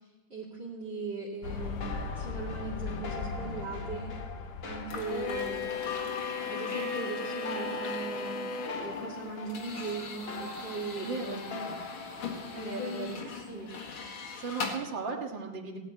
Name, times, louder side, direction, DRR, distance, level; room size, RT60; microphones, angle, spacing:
voice 1, 0.3-4.1 4.6-5.7 6.5-8.4 8.8-11.4 12.5-13.2 13.5-13.7, right 3 dB, 30° right, -5 dB, 2.6 m, -39 dB
sound 1, 1.4-6.2, left 5 dB, 90° left, 2.1 m, -39 dB
sound 2, 1.8-13.1, left 4 dB, 50° left, 0.7 m, -42 dB
sound 3, 4.9-14.8, left 4 dB, 75° left, 2.7 m, -37 dB
voice 2, 11.0-11.7 12.5-13.2 13.5-13.7 14.4-15.8, right 4 dB, 60° right, 3 dB, 2.4 m, -37 dB
17.5 x 6.7 x 9.6 m, 1.1 s
omnidirectional pair, 2.4 m